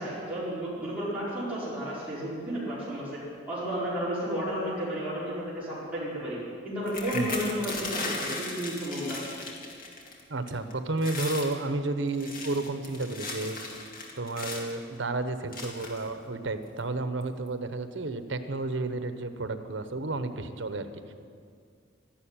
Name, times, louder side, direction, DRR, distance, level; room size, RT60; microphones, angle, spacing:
voice 1, 0.0-3.2 3.5-6.4 6.6-9.2, equal, 5° right, -12 dB, 4.9 m, -32 dB
sound 1, 6.9-10.2 10.5-10.7 11.0-11.5 12.1-14.8 15.5-16.1 16.8-16.9 17.2-17.5, left 3 dB, 45° left, 2.4 m, -37 dB
voice 2, 10.3-13.6 14.2-21.1, right 2 dB, 65° right, 9 dB, 1.0 m, -32 dB
12.5 x 11.5 x 8.9 m, 2.2 s
head